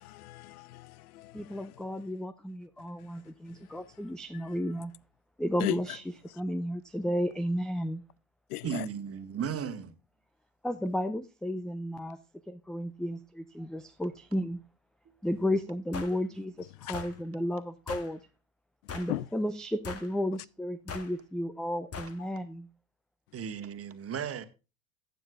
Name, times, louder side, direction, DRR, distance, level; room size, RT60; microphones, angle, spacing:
voice 1, 0.0-1.6 4.3-4.4 5.6-5.8 8.5-8.9 16.8-16.9 19.1-19.3, left 17 dB, 70° left, 0.5 m, -36 dB
voice 2, 1.3-4.9 5.4-6.0 6.3-8.0 10.6-12.2 12.5-14.6 15.2-18.2 18.9-22.7, equal, ahead, 0.6 m, -33 dB
voice 3, 8.6-10.0 23.3-24.5, right 7 dB, 30° right, 1.6 m, -35 dB
sound 1, 15.9-16.2 16.9-17.1 17.9-18.1 18.9-19.2 19.8-20.1 20.9-21.1 21.9-22.2, left 5 dB, 30° left, 2.0 m, -40 dB
15.0 x 9.3 x 2.4 m
hypercardioid pair, 75°, 46 cm